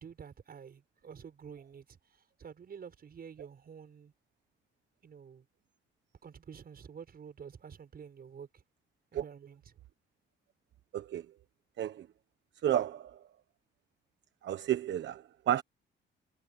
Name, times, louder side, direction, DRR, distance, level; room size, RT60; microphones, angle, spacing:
voice 1, 0.0-4.1 5.0-5.5 6.2-8.6 9.1-9.7, right 7 dB, 50° right, 6.6 m, -49 dB
voice 2, 10.9-11.3 11.8-12.1 12.6-13.2 14.4-15.6, right 11 dB, 65° right, 1.3 m, -32 dB
cardioid pair, 90°, 20 cm